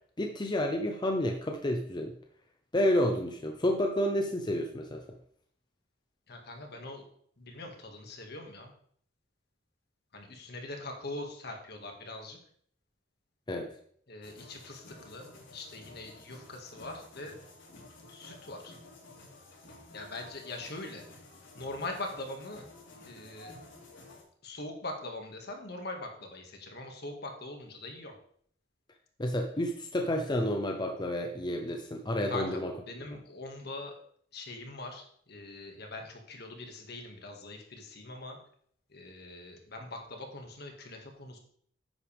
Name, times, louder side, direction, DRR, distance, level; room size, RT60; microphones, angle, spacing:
voice 1, 0.2-2.2 2.7-5.0 13.5-13.7 29.2-32.7, left 1 dB, 25° left, 3 dB, 0.7 m, -30 dB
voice 2, 6.3-7.0 7.4-8.7 10.1-12.4 14.1-17.4 18.1-18.7 19.9-21.0 21.6-22.6 22.9-23.5 24.4-28.2 32.3-32.6 32.9-33.9 34.3-38.4 38.9-41.4, left 2 dB, 60° left, 3 dB, 1.9 m, -42 dB
sound 1, 14.2-24.2, left 2 dB, 85° left, 3.9 m, -52 dB
10.5 x 8.2 x 3.5 m, 0.62 s
head